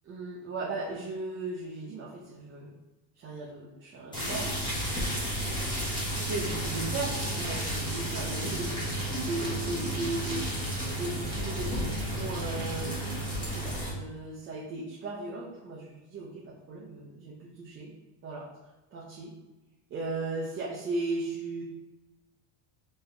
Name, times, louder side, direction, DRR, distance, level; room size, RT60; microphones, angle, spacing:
voice 1, 0.1-2.7 3.1-4.7 5.0-5.7 6.1-10.5 10.9-13.0 13.5-17.9 18.2-18.5 18.9-19.3 19.9-21.6, right 2 dB, 25° right, -5 dB, 0.6 m, -37 dB
sound 1, 4.1-13.9, right 1 dB, 10° left, 1.3 m, -32 dB
4.0 x 3.6 x 3.4 m, 1.1 s
cardioid pair, 150°, 45 cm